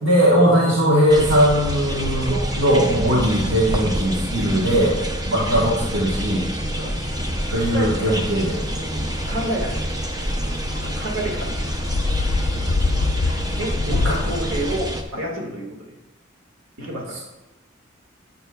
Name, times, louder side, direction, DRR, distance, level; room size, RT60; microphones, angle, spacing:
voice 1, 0.0-5.0 5.3-6.5 7.5-8.5 13.9-14.2, equal, 70° right, -5 dB, 1.3 m, -19 dB
sound 1, 1.1-15.0, equal, 20° right, 0.6 m, -27 dB
sound 2, 7.1-14.8, left 3 dB, 75° left, 0.4 m, -26 dB
voice 2, 7.7-8.3 8.9-9.8 10.8-11.5 13.5-15.9 16.8-17.2, right 1 dB, 90° right, 0 dB, 1.9 m, -29 dB
11.0 x 7.8 x 2.3 m, 1.0 s
head